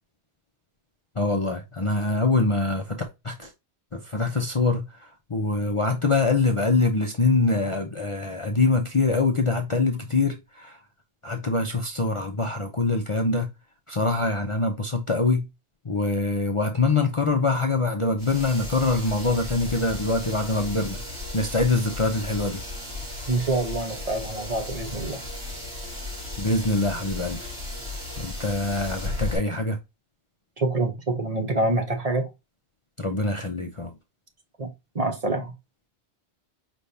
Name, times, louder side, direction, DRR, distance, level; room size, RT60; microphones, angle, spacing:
voice 1, 1.2-3.0 3.2-3.5 3.9-10.8 11.2-13.5 13.9-15.5 15.8-21.0 21.3-22.6 26.4-27.5 28.2-29.8 33.0-33.9, left 3 dB, 35° left, 0.6 m, -24 dB
sound 1, 18.2-29.4, left 2 dB, 70° right, 3.6 m, -35 dB
voice 2, 23.3-25.2 30.6-32.3 34.6-35.5, right 2 dB, 35° right, 1.0 m, -26 dB
5.1 x 3.4 x 2.7 m
omnidirectional pair, 1.1 m